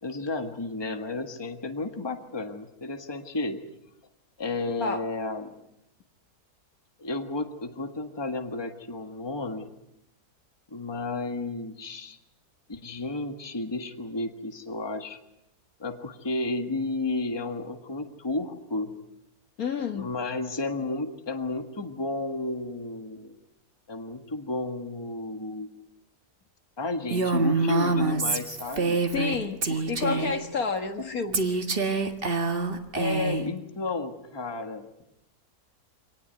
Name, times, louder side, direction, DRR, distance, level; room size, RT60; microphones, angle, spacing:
voice 1, 0.0-3.6 4.4-5.5 7.0-9.7 10.7-12.2 12.7-15.2 15.8-18.9 19.9-23.4 23.9-25.7 26.8-29.0 29.7-30.4 31.0-31.3 32.9-34.9, left 2 dB, 15° left, 6 dB, 1.6 m, -32 dB
voice 2, 19.6-20.1 29.1-31.6, left 5 dB, 60° left, 7 dB, 2.1 m, -30 dB
Female speech woman speaking, 27.1-29.4 29.6-30.4 31.3-33.5, right 3 dB, 35° right, 1.8 m, -26 dB
25.5 x 18.5 x 9.4 m, 0.86 s
omnidirectional pair, 1.7 m